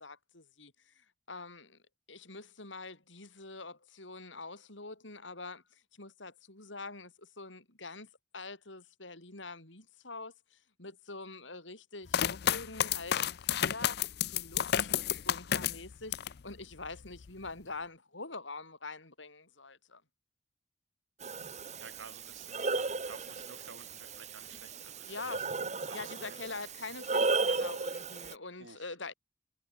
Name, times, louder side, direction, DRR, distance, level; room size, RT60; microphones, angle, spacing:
voice 1, 0.0-1.8 2.1-14.0 14.3-20.0 25.0-25.5 25.9-29.1, left 3 dB, 80° left, 7.1 m, -45 dB
sound 1, 12.1-16.4 16.8-17.5, left 10 dB, 55° left, 0.5 m, -31 dB
Breathing, 21.2-28.3, right 3 dB, 40° right, 2.0 m, -35 dB
voice 2, 21.8-25.5 25.8-26.4 28.6-29.1, right 4 dB, 85° right, 7.5 m, -53 dB
head